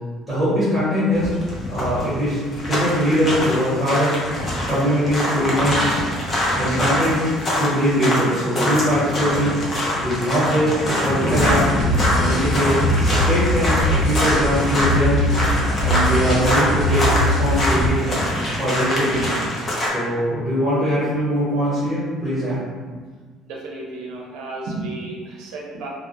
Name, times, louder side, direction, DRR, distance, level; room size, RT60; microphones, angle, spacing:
voice 1, 0.3-1.3 1.7-4.2 4.7-5.8 6.6-7.2 7.6-9.6 10.0-11.6 11.9-15.2 15.6-18.1 18.6-19.4 19.8-22.6, equal, ahead, -13 dB, 1.0 m, -21 dB
sound 1, 1.1-19.9, left 1 dB, 30° left, 0.5 m, -24 dB
sound 2, 11.3-17.9, equal, 80° left, 0.8 m, -22 dB
voice 2, 23.5-25.9, right 2 dB, 75° right, -2 dB, 0.5 m, -32 dB
2.2 x 2.0 x 2.8 m, 1.5 s
cardioid pair, 165°, 0 cm